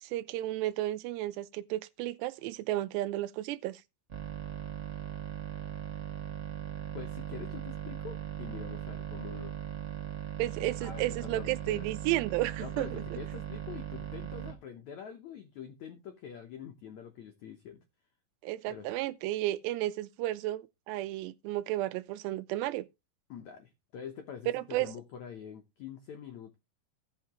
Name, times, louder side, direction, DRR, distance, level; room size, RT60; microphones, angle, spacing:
voice 1, 0.0-3.8 10.4-13.2 18.4-22.9 24.5-24.9, right 15 dB, 85° right, 2.8 m, -33 dB
sound 1, 4.1-14.5, right 11 dB, 60° right, 1.3 m, -39 dB
voice 2, 6.9-9.5 10.6-11.9 12.6-17.8 18.7-18.9 23.3-26.6, left 8 dB, 85° left, 1.6 m, -45 dB
16.5 x 5.7 x 3.0 m
omnidirectional pair, 4.9 m